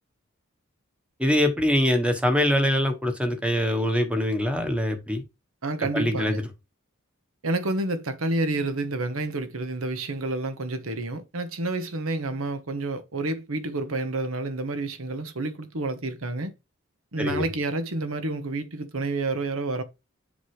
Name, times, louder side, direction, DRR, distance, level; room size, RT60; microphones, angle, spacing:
voice 1, 1.2-5.2 5.9-6.4 17.2-17.5, left 1 dB, 5° right, 1.1 m, -23 dB
voice 2, 5.6-6.4 7.4-16.5 17.1-19.8, right 2 dB, 75° right, 1.2 m, -29 dB
7.3 x 5.4 x 3.2 m
head